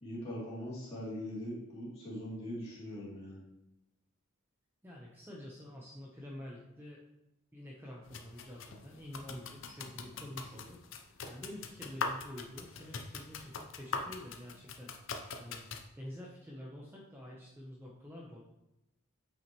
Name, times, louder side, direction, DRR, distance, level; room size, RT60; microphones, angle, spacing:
voice 1, 0.0-3.4, equal, 30° left, -7 dB, 2.8 m, -41 dB
voice 2, 4.8-7.0 7.5-15.7 16.0-18.4, left 1 dB, 10° right, -3 dB, 0.8 m, -48 dB
sound 1, 8.1-15.9, left 4 dB, 60° left, 0.6 m, -42 dB
8.5 x 5.7 x 3.0 m, 0.91 s
head